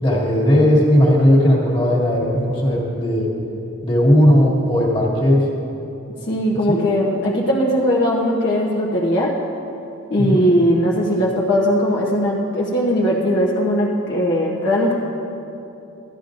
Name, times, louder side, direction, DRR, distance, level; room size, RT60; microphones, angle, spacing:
voice 1, 0.0-3.3 3.8-5.5 6.7-6.8 10.2-10.4, equal, 25° left, -4 dB, 1.8 m, -16 dB
voice 2, 6.3-9.3 10.1-14.9, equal, 50° left, -5 dB, 1.0 m, -19 dB
14.5 x 12.0 x 2.6 m, 2.9 s
head